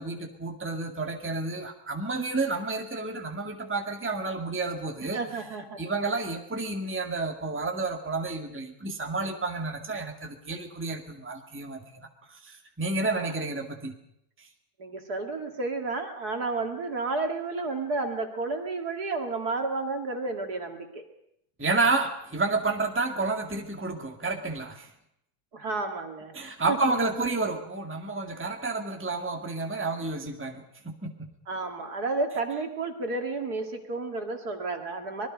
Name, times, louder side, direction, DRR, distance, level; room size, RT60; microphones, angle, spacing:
voice 1, 0.0-5.2 5.8-13.9 14.4-14.5 21.6-24.9 26.3-31.3, right 3 dB, 5° right, 3 dB, 2.0 m, -30 dB
voice 2, 5.1-5.8 6.1-6.2 13.1-13.3 14.8-21.0 25.5-26.4 26.7-26.8 27.2-27.3 31.5-35.3, right 3 dB, 50° right, 4 dB, 2.7 m, -31 dB
25.5 x 21.0 x 5.3 m, 0.76 s
omnidirectional pair, 2.2 m